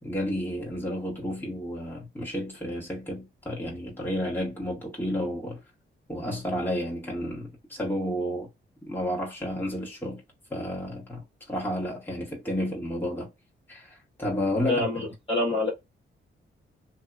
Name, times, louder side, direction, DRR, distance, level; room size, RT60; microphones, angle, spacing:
voice 1, 0.0-5.6 6.1-8.5 8.9-10.2 10.5-13.3 13.7-14.9, equal, 10° left, 1.5 m, -31 dB
voice 2, 14.6-15.7, left 2 dB, 25° left, 1.3 m, -26 dB
2.7 x 2.7 x 2.3 m
wide cardioid pair, 155°, 21 cm